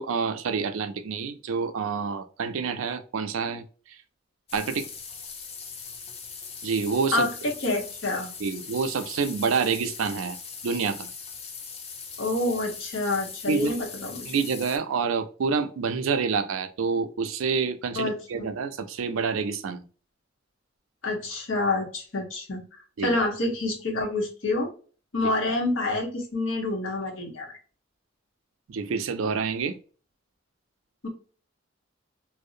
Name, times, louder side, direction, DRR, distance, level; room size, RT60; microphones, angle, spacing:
voice 1, 0.0-3.6 4.5-4.9 6.6-7.3 8.4-10.4 10.6-11.1 13.5-13.8 14.3-19.8 23.0-23.1 28.7-29.8, right 5 dB, 85° right, 0.4 m, -27 dB
sound 1, 4.5-14.8, left 5 dB, 30° left, 0.4 m, -40 dB
voice 2, 7.1-8.3 12.2-14.3 17.9-18.5 21.0-22.6 23.0-24.7 25.1-27.5 31.0-31.1, left 2 dB, 75° left, 1.0 m, -27 dB
2.6 x 2.0 x 2.5 m
head